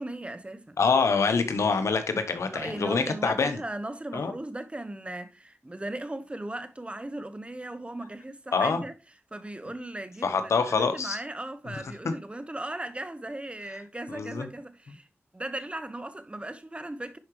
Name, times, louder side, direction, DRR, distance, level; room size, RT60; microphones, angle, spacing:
voice 1, 0.0-0.8 2.5-8.9 9.3-15.1 15.3-17.2, right 1 dB, 25° right, 1.0 m, -37 dB
voice 2, 0.8-3.6 4.1-4.3 8.5-8.8 10.2-11.2 11.7-12.1 14.1-14.5, left 5 dB, 90° left, 1.0 m, -26 dB
10.5 x 4.9 x 3.1 m
cardioid pair, 50°, 5 cm